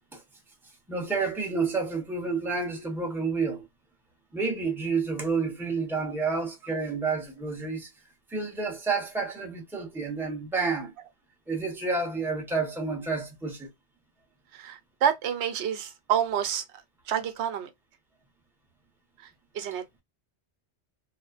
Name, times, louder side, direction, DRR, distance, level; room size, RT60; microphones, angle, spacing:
voice 1, 0.9-3.7 4.3-7.9 8.3-10.9 11.5-13.7, right 4 dB, ahead, 0.7 m, -29 dB
voice 2, 14.6-16.6 17.1-17.7 19.6-19.8, right 9 dB, 85° right, 0.9 m, -28 dB
3.1 x 2.1 x 2.3 m
omnidirectional pair, 1.1 m